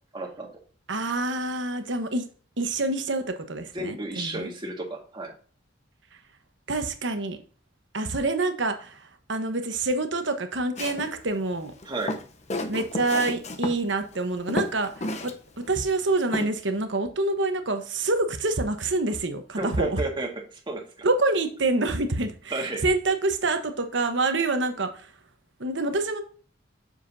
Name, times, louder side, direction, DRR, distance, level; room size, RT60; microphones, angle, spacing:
voice 1, 0.1-0.5 3.7-5.3 11.8-12.2 19.6-20.8 22.5-22.8, right 2 dB, 25° right, 1.7 m, -32 dB
voice 2, 0.9-2.3 2.6-4.5 6.7-7.4 7.9-11.7 12.7-20.0 21.0-25.1 25.6-26.2, right 2 dB, 65° right, 1.1 m, -27 dB
Walk footsteps, 10.8-11.1 11.8-13.8 14.1-14.2 14.5-15.3 15.6-15.7 16.3-16.5, left 1 dB, 35° left, 0.7 m, -31 dB
7.6 x 6.7 x 2.7 m
head